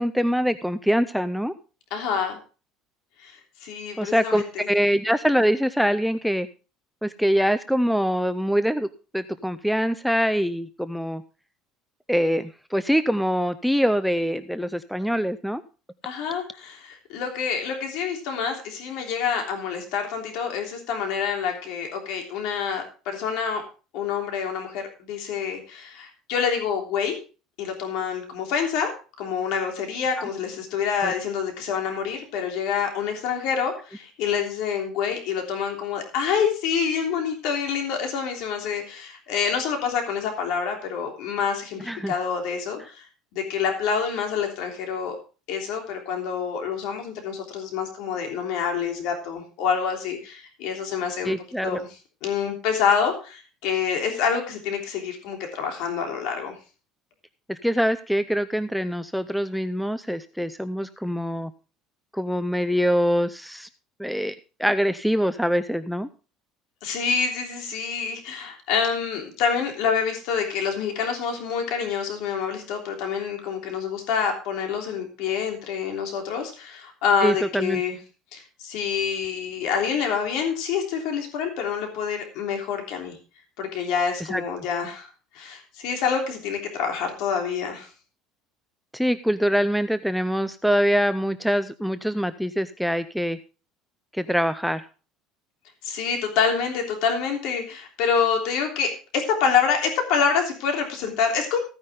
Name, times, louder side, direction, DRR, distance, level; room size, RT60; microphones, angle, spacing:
voice 1, 0.0-1.5 4.0-6.5 7.0-8.9 9.1-11.2 12.1-15.6 31.0-31.1 41.9-42.2 51.2-51.8 57.5-61.5 62.1-63.7 64.0-66.1 77.2-77.8 84.3-84.4 88.9-93.4 94.1-94.8, equal, ahead, 12 dB, 0.5 m, -24 dB
voice 2, 1.9-2.4 3.2-3.3 3.6-4.7 16.0-23.6 23.9-27.2 27.6-28.9 29.2-43.1 43.3-45.2 45.5-51.4 51.6-51.9 52.2-56.5 66.8-78.0 78.3-83.2 83.6-85.1 85.3-87.9 95.8-101.6, left 6 dB, 60° left, 3 dB, 3.2 m, -27 dB
15.5 x 9.6 x 3.6 m, 0.34 s
cardioid pair, 170°, 0 cm